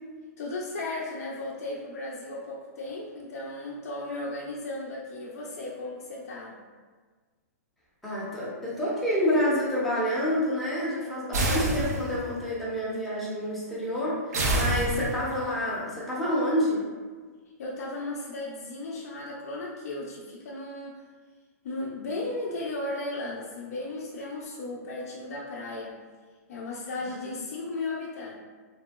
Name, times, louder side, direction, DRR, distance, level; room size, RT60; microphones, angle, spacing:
voice 1, 0.4-6.6 17.6-21.0 21.6-26.0 26.5-28.4, left 2 dB, 65° left, -3 dB, 0.4 m, -35 dB
voice 2, 8.0-16.9 27.1-27.3, equal, ahead, -9 dB, 0.6 m, -28 dB
sound 1, 11.3-12.3 14.3-15.4, right 1 dB, 80° right, 0.6 m, -27 dB
2.9 x 2.6 x 2.2 m, 1.4 s
hypercardioid pair, 160°, 9 cm